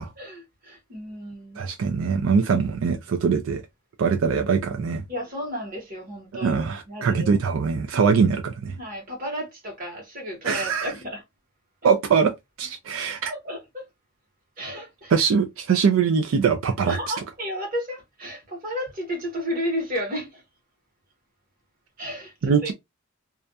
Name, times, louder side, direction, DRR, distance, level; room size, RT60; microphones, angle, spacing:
voice 1, 0.2-1.7 5.1-7.3 7.9-8.1 8.8-11.2 11.8-11.9 13.3-13.9 14.6-15.2 16.8-20.4 22.0-22.7, equal, 45° right, 1.1 m, -33 dB
voice 2, 1.6-3.6 4.0-5.0 6.4-8.8 10.4-10.9 11.8-12.3 12.6-13.3 15.1-17.0 22.4-22.7, right 6 dB, 80° right, 0.4 m, -22 dB
2.4 x 2.2 x 2.6 m
head